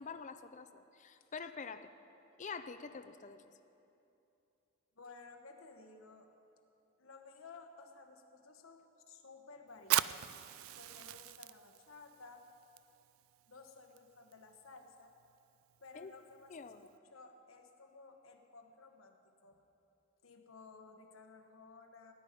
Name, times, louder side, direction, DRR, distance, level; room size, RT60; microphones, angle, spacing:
voice 1, 0.0-1.9 2.4-3.5 15.9-16.1 16.5-16.9, left 5 dB, 35° left, 10 dB, 0.5 m, -46 dB
voice 2, 5.0-6.3 7.0-10.3 10.7-12.4 13.5-15.1 15.8-16.7 17.1-19.6 20.2-22.1, left 4 dB, 70° left, 3 dB, 1.2 m, -56 dB
Fire, 9.8-17.0, right 14 dB, 70° right, 0.3 m, -41 dB
18.0 x 10.0 x 5.3 m, 2.8 s
head